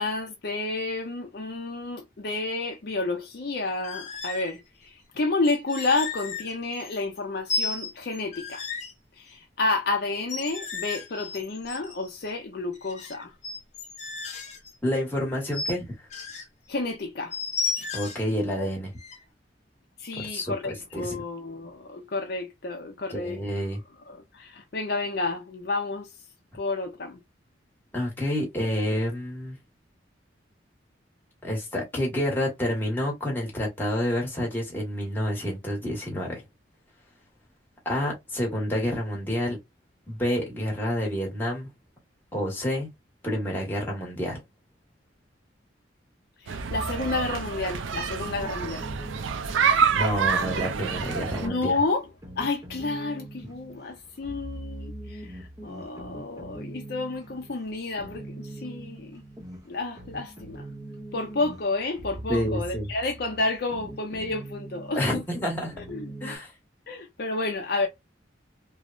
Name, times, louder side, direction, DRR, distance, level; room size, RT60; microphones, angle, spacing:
voice 1, 0.0-8.6 9.2-13.3 16.7-17.3 17.8-17.9 20.0-23.4 24.1-26.1 26.5-27.2 46.4-48.8 51.4-52.1 52.4-59.2 59.7-60.7 61.1-65.2 65.8-66.5 66.9-67.9, left 3 dB, 55° left, 0.5 m, -30 dB
sound 1, 3.8-4.6 5.4-7.2 7.5-8.9 10.2-12.3 12.7-14.7 15.5-15.7 16.1-16.4 17.3-18.2 19.0-19.2, left 4 dB, 35° left, 0.9 m, -34 dB
voice 2, 14.8-15.9 17.9-18.9 20.2-21.2 23.1-23.8 27.9-29.6 31.4-36.4 37.8-39.6 40.1-41.7 42.3-42.9 43.2-44.4 49.9-51.8 62.3-62.9 65.0-65.7 66.2-66.5, equal, 10° left, 1.0 m, -28 dB
sound 2, 46.5-66.4, right 1 dB, 20° right, 0.8 m, -42 dB
sound 3, 46.5-51.5, right 6 dB, 85° right, 0.4 m, -27 dB
3.1 x 2.0 x 2.3 m
head